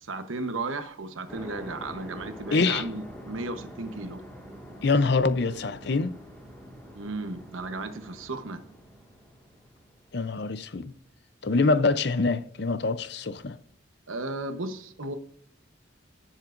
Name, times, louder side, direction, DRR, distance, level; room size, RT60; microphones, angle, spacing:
voice 1, 0.0-4.2 6.9-8.6 14.1-15.1, right 2 dB, 85° right, 1.1 m, -35 dB
sound 1, 1.3-10.3, equal, 5° left, 1.9 m, -45 dB
voice 2, 2.5-2.9 4.8-6.2 10.1-10.9 11.4-13.6, left 3 dB, 55° left, 0.6 m, -25 dB
17.5 x 7.3 x 2.6 m
head